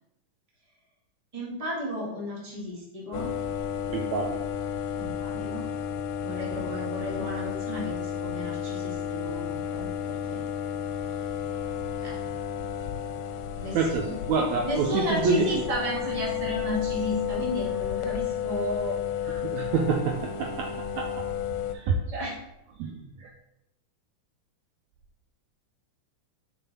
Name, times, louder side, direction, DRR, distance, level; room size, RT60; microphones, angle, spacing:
voice 1, 1.3-3.3 4.9-5.7 6.2-10.4 11.2-11.4 12.0-12.1 13.6-14.1 14.6-19.0 22.1-22.4 22.8-23.0, equal, 15° right, -5 dB, 1.6 m, -33 dB
sound 1, 3.1-21.8, left 8 dB, 80° left, 2.2 m, -32 dB
voice 2, 3.9-4.4 13.7-15.5 19.5-21.3 21.7-22.0 22.8-22.9 23.2-23.3, right 4 dB, 75° right, 2 dB, 1.8 m, -27 dB
6.8 x 6.0 x 4.2 m, 0.87 s
omnidirectional pair, 3.7 m